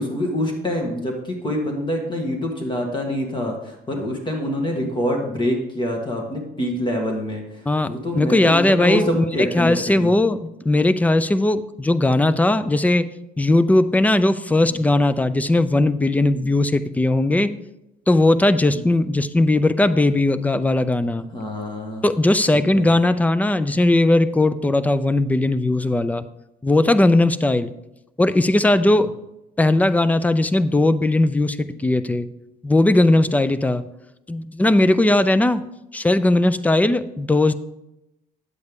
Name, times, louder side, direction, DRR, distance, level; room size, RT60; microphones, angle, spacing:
voice 1, 0.0-7.4 7.9-10.1 14.7-14.8 16.3-16.5 18.7-18.8 21.3-22.0 22.5-22.9 28.8-28.9, left 1 dB, 30° left, 2 dB, 1.7 m, -26 dB
voice 2, 7.7-13.1 13.4-17.5 18.1-21.3 22.0-26.3 26.6-27.7 28.2-29.1 29.6-32.3 32.6-33.8 34.3-35.6 35.9-37.5, left 2 dB, 10° left, 14 dB, 0.4 m, -18 dB
9.6 x 7.9 x 3.6 m, 0.89 s
cardioid pair, 110°, 17 cm